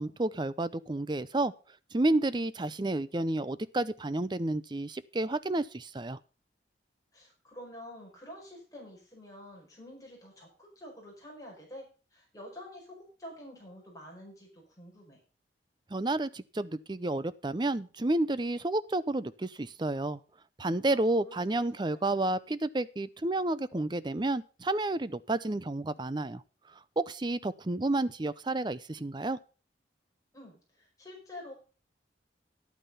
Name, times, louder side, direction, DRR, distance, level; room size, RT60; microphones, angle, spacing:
voice 1, 0.0-1.5 1.9-6.2 15.9-20.2 20.6-26.4 27.0-29.4, right 2 dB, 25° right, 16 dB, 0.5 m, -30 dB
voice 2, 7.1-15.2 20.9-21.4 21.9-22.0 30.3-31.5, left 1 dB, 20° left, -1 dB, 5.0 m, -48 dB
10.5 x 8.9 x 5.4 m, 0.35 s
head